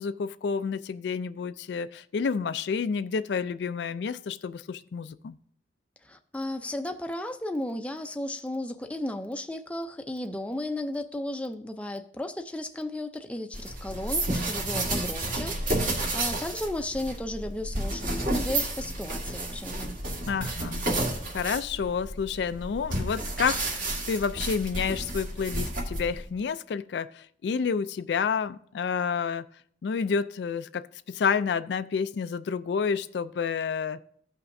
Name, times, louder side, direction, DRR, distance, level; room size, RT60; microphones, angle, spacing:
voice 1, 0.0-5.4 20.3-20.8 21.3-29.4 29.8-34.0, left 6 dB, 70° left, 0.3 m, -29 dB
voice 2, 6.0-19.9, left 1 dB, 5° left, 0.5 m, -34 dB
sound 1, 13.5-26.3, right 1 dB, 50° right, 1.7 m, -31 dB
15.0 x 5.7 x 2.6 m
head